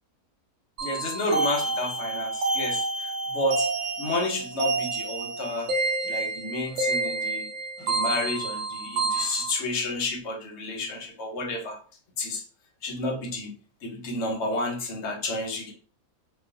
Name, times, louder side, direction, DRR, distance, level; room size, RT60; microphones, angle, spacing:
voice 1, 0.8-2.8 3.3-3.7 4.0-5.7 6.0-7.5 7.8-11.8 12.2-12.4 12.8-13.5 13.8-15.7, left 2 dB, 60° left, 2 dB, 0.8 m, -30 dB
sound 1, 0.8-9.5, right 3 dB, 65° right, 0.8 m, -29 dB
2.4 x 2.3 x 2.5 m, 0.39 s
omnidirectional pair, 1.6 m